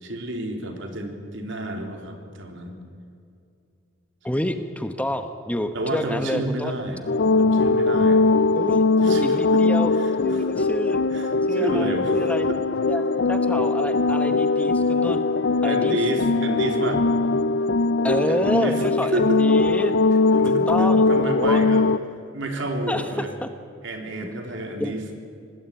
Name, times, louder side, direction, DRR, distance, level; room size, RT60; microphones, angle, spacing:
voice 1, 0.0-2.7 5.7-7.0 7.4-8.3 9.0-9.6 10.0-10.1 11.1-12.2 15.6-17.0 18.3-18.8 19.1-19.4 20.4-21.8 22.3-23.3 23.8-25.1, right 1 dB, 65° right, 3 dB, 3.6 m, -30 dB
voice 2, 4.2-6.7 8.5-8.8 9.2-9.9 10.2-11.0 11.5-12.5 12.9-15.2 15.6-16.0 18.0-20.0 20.4-21.7 22.9-23.5 24.2-24.3 24.8-25.0, left 1 dB, 5° left, 8 dB, 1.0 m, -28 dB
sound 1, 7.1-22.0, left 3 dB, 60° left, 0.5 m, -20 dB
25.5 x 19.5 x 8.9 m, 2.4 s
head